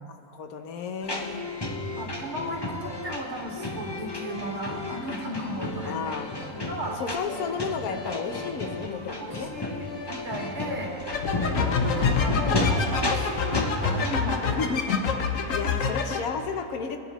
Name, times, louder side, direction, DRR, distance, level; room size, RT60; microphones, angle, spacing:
voice 1, 0.0-1.4 1.9-2.2 5.9-6.3 7.0-9.5 11.4-11.5 13.3-13.5 14.4-14.8 15.3-17.0, left 6 dB, 90° left, 7 dB, 1.3 m, -33 dB
sound 1, 1.0-14.2, left 2 dB, 20° left, 0.7 m, -32 dB
voice 2, 2.0-6.1 6.7-7.0 7.9-8.1 9.2-10.9 11.4-14.7 15.9-16.0, right 1 dB, 55° right, 0 dB, 1.8 m, -35 dB
sound 2, 11.1-16.2, left 5 dB, 70° left, 1.2 m, -26 dB
21.0 x 10.5 x 3.0 m, 2.6 s
omnidirectional pair, 1.5 m